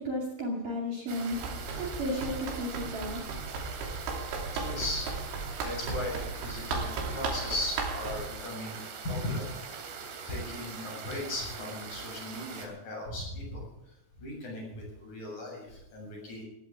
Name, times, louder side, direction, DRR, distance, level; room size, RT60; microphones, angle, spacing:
voice 1, 0.0-1.4 1.8-3.2, equal, 50° right, -1 dB, 3.3 m, -33 dB
sound 1, 1.1-12.7, right 5 dB, 65° right, 4.9 m, -42 dB
Run, 1.3-8.2, right 4 dB, 85° right, 5.6 m, -36 dB
voice 2, 4.6-5.1 5.6-8.8 9.0-9.5 10.2-13.7 14.2-16.4, left 1 dB, 40° left, -1 dB, 8.8 m, -37 dB
20.5 x 16.0 x 3.6 m, 0.85 s
omnidirectional pair, 5.8 m